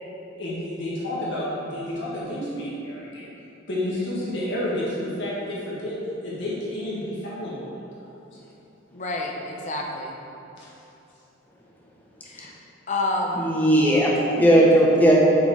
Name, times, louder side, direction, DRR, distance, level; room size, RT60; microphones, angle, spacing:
voice 1, 0.4-3.3 3.7-6.0 6.2-7.7 8.0-8.1 10.6-10.7, left 1 dB, 60° left, -7 dB, 1.6 m, -30 dB
voice 2, 8.9-10.1 12.3-12.5 12.9-13.5, left 2 dB, 35° left, 0 dB, 0.7 m, -28 dB
voice 3, 13.4-15.2, right 1 dB, 10° left, -4 dB, 0.9 m, -17 dB
7.3 x 4.4 x 4.8 m, 2.9 s
head